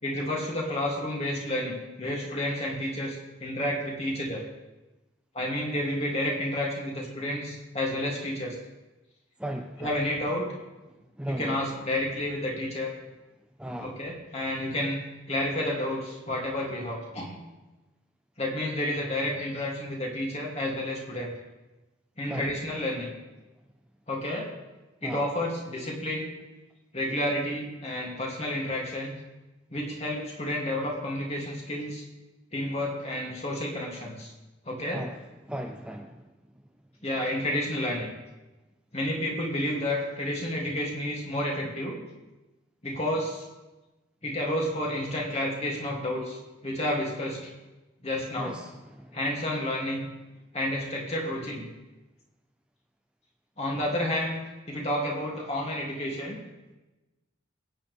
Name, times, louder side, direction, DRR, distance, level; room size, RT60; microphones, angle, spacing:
voice 1, 0.0-4.4 5.3-8.5 9.8-10.5 11.3-12.9 13.8-15.0 15.3-17.4 18.4-21.3 22.2-23.1 24.1-24.5 25.0-26.3 26.9-29.2 29.7-32.0 32.5-34.3 34.6-35.0 37.0-38.1 38.9-42.0 42.8-43.4 44.2-47.5 48.0-48.6 49.1-50.1 50.5-51.7 53.6-54.4 54.7-56.4, left 1 dB, 35° left, 2.8 m, -30 dB
voice 2, 9.4-10.0 11.2-11.7 13.6-14.0 22.3-22.5 25.0-25.2 34.9-35.2 35.5-36.3 48.4-49.2, right 1 dB, 5° right, 0.6 m, -36 dB
24.5 x 9.1 x 3.6 m
head